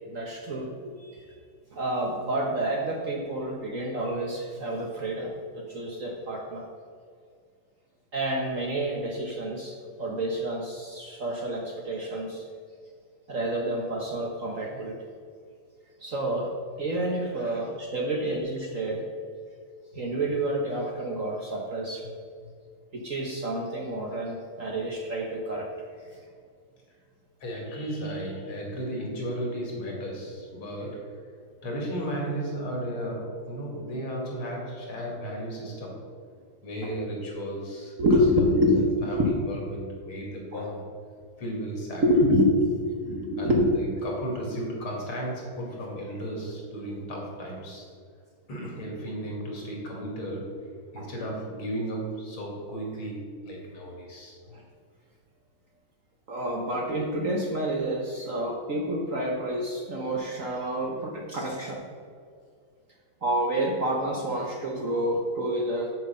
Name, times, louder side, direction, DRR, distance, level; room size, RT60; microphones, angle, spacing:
voice 1, 0.1-0.9 1.7-6.7 8.1-12.5 13.3-15.1 16.0-16.5 16.8-19.0 19.9-22.1 22.9-25.7 36.8-36.9 38.0-39.3 40.5-40.7 42.0-43.7 51.0-51.1 54.5-54.6 56.3-61.8 63.2-65.9, equal, 50° right, 0 dB, 1.1 m, -28 dB
voice 2, 1.0-1.3 17.4-17.6 18.1-18.7 26.1-26.2 27.4-31.2 31.6-36.0 36.6-38.0 38.4-38.5 38.7-40.9 41.4-42.0 43.4-47.9 48.5-54.4, right 1 dB, 75° left, -1 dB, 3.1 m, -35 dB
7.6 x 5.7 x 7.5 m, 2.1 s
omnidirectional pair, 2.3 m